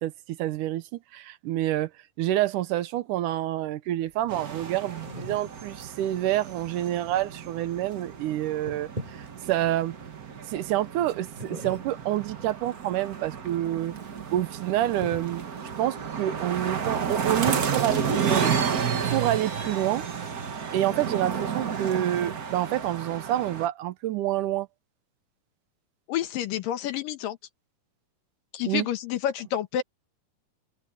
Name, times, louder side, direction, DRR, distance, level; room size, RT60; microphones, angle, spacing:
voice 1, 0.0-1.9 2.2-9.9 10.5-13.9 14.3-15.4 15.8-18.5 19.1-20.0 20.7-24.7 28.7-28.9, right 13 dB, 75° right, 2.3 m, -28 dB
sound 1, 4.1-19.9, right 1 dB, 15° right, 5.1 m, -44 dB
sound 2, 4.3-23.7, right 6 dB, 60° right, 0.9 m, -32 dB
voice 2, 26.1-27.4 28.5-29.8, left 11 dB, 90° left, 3.1 m, -29 dB
omnidirectional pair, 3.8 m